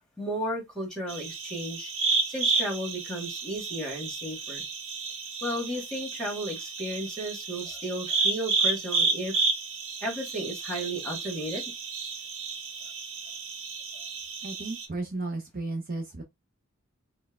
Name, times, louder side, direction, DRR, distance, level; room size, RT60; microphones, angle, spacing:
voice 1, 0.2-1.9 2.3-4.6 5.4-9.4 10.0-11.6, right 1 dB, 5° left, 1.5 m, -34 dB
sound 1, 1.1-14.9, right 4 dB, 60° right, 1.0 m, -31 dB
voice 2, 14.4-16.2, right 2 dB, 40° right, 0.7 m, -34 dB
4.3 x 2.2 x 3.4 m
head